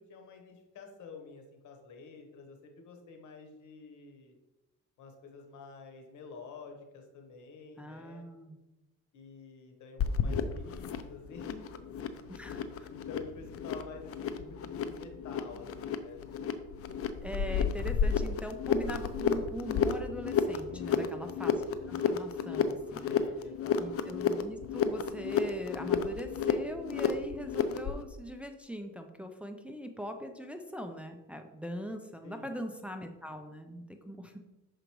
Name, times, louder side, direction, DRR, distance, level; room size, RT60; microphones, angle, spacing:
voice 1, 0.0-4.4 5.0-8.3 9.1-11.8 12.1-12.6 12.9-16.5 20.7-21.4 23.0-23.8 32.2-32.5, left 4 dB, 75° left, 3 dB, 1.2 m, -49 dB
voice 2, 7.8-8.6 12.3-12.6 17.2-23.2 23.7-34.3, equal, 5° right, 5 dB, 0.5 m, -41 dB
sound 1, 10.0-28.0, left 7 dB, 50° left, 0.6 m, -32 dB
6.5 x 5.0 x 3.0 m, 1.0 s
cardioid pair, 90°, 30 cm